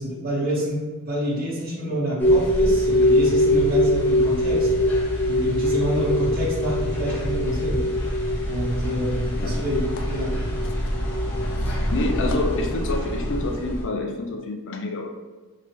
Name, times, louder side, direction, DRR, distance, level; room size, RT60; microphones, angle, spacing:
voice 1, 0.0-4.7 5.3-7.8 8.5-10.4, equal, 45° right, -5 dB, 1.3 m, -27 dB
sound 1, 2.2-13.8, left 1 dB, 10° left, 0.9 m, -23 dB
voice 2, 11.4-15.1, left 2 dB, 60° left, 2 dB, 0.5 m, -28 dB
5.1 x 2.9 x 3.4 m, 1.3 s
head